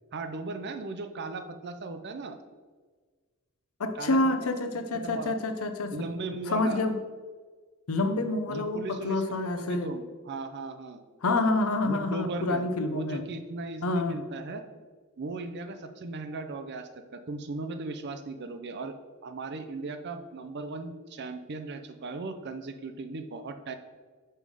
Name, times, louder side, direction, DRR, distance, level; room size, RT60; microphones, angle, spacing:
voice 1, 0.1-2.4 4.0-4.5 5.0-5.4 5.9-6.8 8.5-11.0 11.9-14.6 15.2-18.9 19.2-23.8, right 3 dB, 50° right, 8 dB, 0.5 m, -37 dB
voice 2, 3.8-5.9 6.5-7.0 7.9-9.9 11.2-13.3 13.8-14.2, left 2 dB, 75° left, 7 dB, 0.7 m, -28 dB
5.6 x 5.4 x 4.8 m, 1.4 s
head